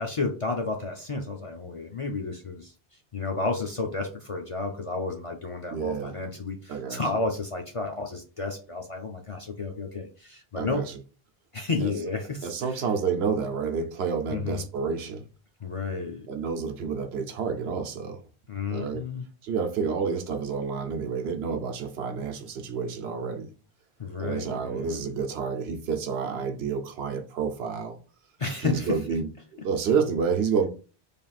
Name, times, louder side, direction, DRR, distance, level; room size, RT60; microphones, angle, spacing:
voice 1, 0.0-2.7 3.1-10.8 11.5-12.8 14.3-14.7 15.6-16.3 18.5-19.2 24.0-25.1 28.4-29.0, left 3 dB, 45° left, 0.4 m, -31 dB
voice 2, 5.7-6.1 6.7-7.0 10.6-10.9 11.8-11.9 12.4-15.2 16.3-18.2 18.7-19.0 19.4-23.5 24.2-28.0 28.6-30.7, right 5 dB, 80° right, 0.9 m, -29 dB
3.4 x 2.4 x 4.0 m
omnidirectional pair, 1.1 m